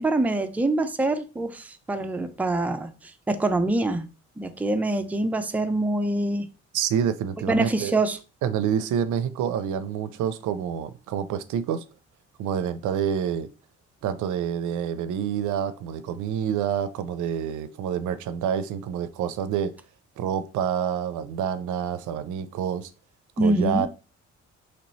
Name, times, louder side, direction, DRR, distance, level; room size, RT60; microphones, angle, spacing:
voice 1, 0.0-2.9 3.3-4.1 4.4-6.5 7.5-8.2 23.4-23.9, right 2 dB, 5° right, 0.4 m, -25 dB
voice 2, 6.7-7.9 8.4-11.8 12.4-13.5 14.0-19.7 20.2-22.9 23.4-23.9, right 8 dB, 80° right, 0.5 m, -27 dB
3.2 x 3.0 x 4.0 m
cardioid pair, 90°, 30 cm